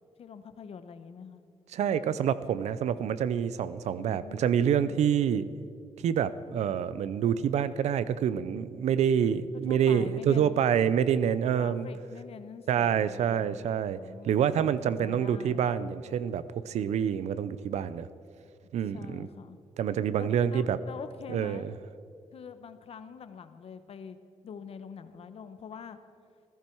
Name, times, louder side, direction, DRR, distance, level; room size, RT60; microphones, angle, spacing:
voice 1, 0.2-1.4 4.0-5.0 9.5-10.7 11.5-15.7 18.4-18.5 18.9-19.6 20.2-21.7 22.3-24.2 24.4-26.0, left 6 dB, 60° left, 11 dB, 1.0 m, -45 dB
voice 2, 1.7-5.5 6.0-11.9 12.7-14.0 14.2-18.1 18.7-19.3 19.8-20.8 21.3-21.7, right 8 dB, 85° right, 15 dB, 0.6 m, -27 dB
16.0 x 14.0 x 4.6 m, 2.4 s
cardioid pair, 105°, 11 cm